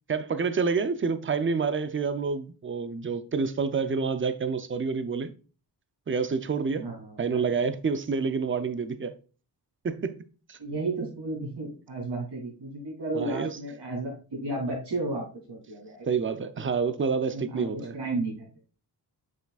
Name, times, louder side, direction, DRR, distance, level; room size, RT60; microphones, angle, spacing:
voice 1, 0.1-5.3 6.1-6.9 7.2-9.1 9.8-10.2 10.5-10.6 13.1-13.6 16.1-17.9, right 5 dB, 30° right, 0.6 m, -28 dB
voice 2, 6.8-7.5 10.6-16.1 17.2-18.4, right 2 dB, 90° right, 3.1 m, -33 dB
7.4 x 6.0 x 2.4 m
wide cardioid pair, 120°, 41 cm